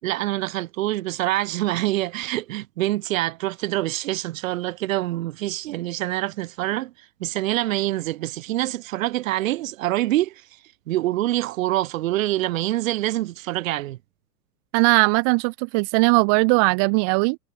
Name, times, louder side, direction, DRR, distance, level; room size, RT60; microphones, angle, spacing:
voice 1, 0.0-6.9 7.2-10.4 10.9-14.0, right 16 dB, 55° right, 4.3 m, -25 dB
voice 2, 14.7-17.4, right 36 dB, 15° right, 0.4 m, -19 dB
hypercardioid pair, 110°, 47 cm